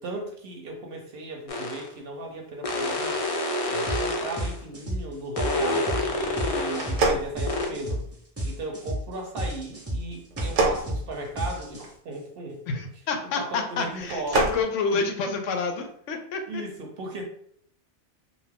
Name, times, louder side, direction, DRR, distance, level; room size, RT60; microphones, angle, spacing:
voice 1, 0.0-3.1 3.7-8.1 8.4-12.8 13.2-14.6 14.9-15.0 16.5-17.2, right 2 dB, 60° right, 2 dB, 0.7 m, -36 dB
sound 1, 1.5-1.9 2.6-4.6 5.4-7.0 7.5-7.7, left 1 dB, 60° left, 0.3 m, -28 dB
sound 2, 3.9-4.1 4.4-12.1, equal, 20° right, 0.4 m, -32 dB
sound 3, 6.7-8.1 10.3-11.9 14.0-14.6, right 3 dB, 80° right, 0.9 m, -26 dB
voice 2, 12.7-16.6, left 4 dB, 90° left, 5 dB, 0.9 m, -28 dB
2.6 x 2.3 x 3.3 m, 0.64 s
omnidirectional pair, 1.2 m